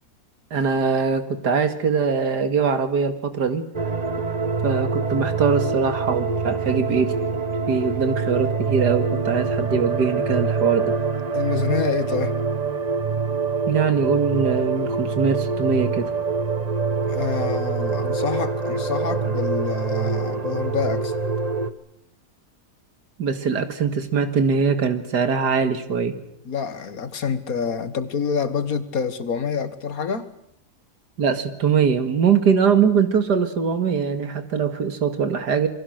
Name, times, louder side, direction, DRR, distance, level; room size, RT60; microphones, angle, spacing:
voice 1, 0.5-3.6 4.6-7.2 7.7-10.9 13.7-16.1 23.2-26.2 31.2-35.7, right 6 dB, 90° right, 2.6 m, -22 dB
sound 1, 3.7-21.7, right 4 dB, 25° right, 1.1 m, -25 dB
voice 2, 11.3-12.3 17.1-21.2 26.5-30.3, left 6 dB, 60° left, 1.9 m, -27 dB
28.0 x 22.5 x 6.5 m
omnidirectional pair, 1.7 m